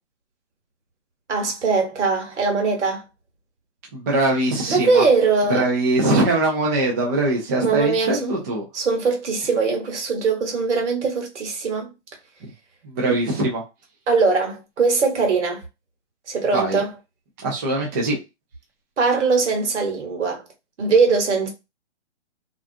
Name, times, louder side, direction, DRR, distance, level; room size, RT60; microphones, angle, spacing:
voice 1, 1.3-3.0 4.7-5.7 7.6-8.3 8.7-11.9 14.1-15.6 16.3-16.9 19.0-20.4 20.8-21.5, right 4 dB, 75° right, 1.2 m, -21 dB
voice 2, 3.9-5.0 5.5-8.6 12.8-13.6 16.5-16.8 17.4-18.2, right 2 dB, 15° right, 0.3 m, -22 dB
2.4 x 2.3 x 2.5 m
hypercardioid pair, 135°, 35 cm